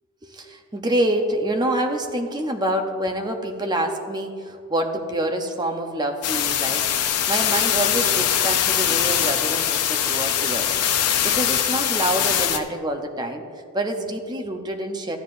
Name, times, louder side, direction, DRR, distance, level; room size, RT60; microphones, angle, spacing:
voice 1, 0.2-13.4 13.7-15.2, right 1 dB, 20° right, 4 dB, 0.7 m, -27 dB
sound 1, 6.2-12.6, left 10 dB, 85° left, 0.6 m, -22 dB
13.5 x 9.3 x 2.6 m, 2.3 s
head